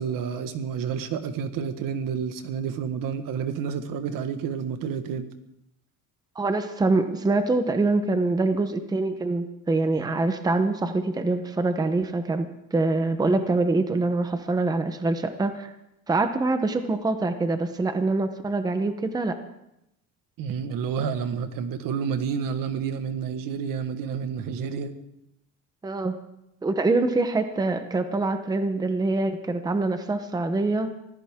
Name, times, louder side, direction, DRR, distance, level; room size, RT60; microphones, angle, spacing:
voice 1, 0.0-5.3 20.4-24.9, right 7 dB, 65° right, 9 dB, 1.5 m, -29 dB
voice 2, 6.4-15.7 16.1-19.4 25.8-26.2 26.6-30.9, right 3 dB, 10° right, 8 dB, 0.9 m, -25 dB
24.5 x 16.0 x 3.7 m, 0.82 s
cardioid pair, 165°, 35 cm